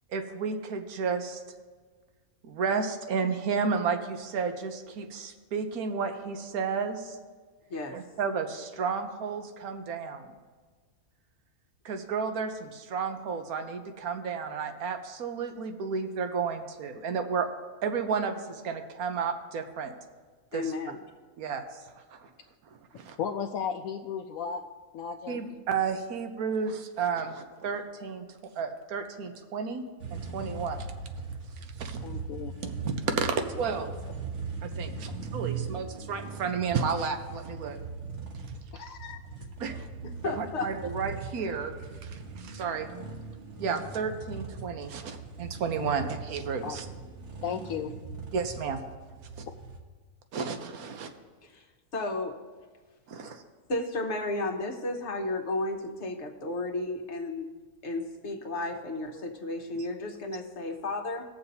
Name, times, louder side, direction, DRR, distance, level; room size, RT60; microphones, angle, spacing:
voice 1, 0.1-1.4 2.4-7.2 7.9-10.3 11.8-17.5 17.8-19.9 20.5-20.7 21.4-21.6 22.1-22.3 22.9-23.2 25.3-29.8 30.1-30.9 31.8-32.0 32.6-33.9 34.6-37.8 39.6-39.9 40.2-41.7 42.0-42.9 43.6-46.9 48.3-48.8 49.4-49.5 50.3-51.1 53.1-53.4 59.1-59.2, right 5 dB, 85° right, 7 dB, 1.3 m, -32 dB
voice 2, 20.5-21.0 40.2-40.7 51.5-51.6 51.9-52.4 53.7-57.5 57.8-61.2, left 2 dB, 55° left, 3 dB, 1.4 m, -33 dB
voice 3, 23.2-24.6 24.9-25.4 32.0-32.6 38.7-39.2 46.6-46.8 47.4-47.9 49.5-49.6, left 7 dB, 75° left, 3 dB, 1.0 m, -34 dB
sound 1, 30.0-49.8, right 4 dB, 55° right, 1.5 m, -40 dB
20.0 x 6.9 x 2.7 m, 1.5 s
omnidirectional pair, 1.5 m